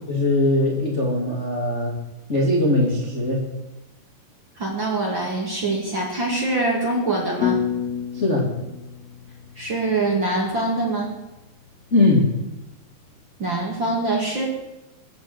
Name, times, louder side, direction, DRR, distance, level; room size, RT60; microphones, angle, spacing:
voice 1, 0.1-1.9 2.3-3.5 8.1-8.5 11.9-12.3, left 2 dB, 20° left, -2 dB, 2.3 m, -20 dB
voice 2, 4.6-7.6 9.6-11.1 13.4-14.4, right 2 dB, 35° right, -1 dB, 2.7 m, -24 dB
sound 1, 7.4-10.4, left 8 dB, 80° left, 3.1 m, -29 dB
22.5 x 7.7 x 8.0 m, 0.97 s
omnidirectional pair, 4.5 m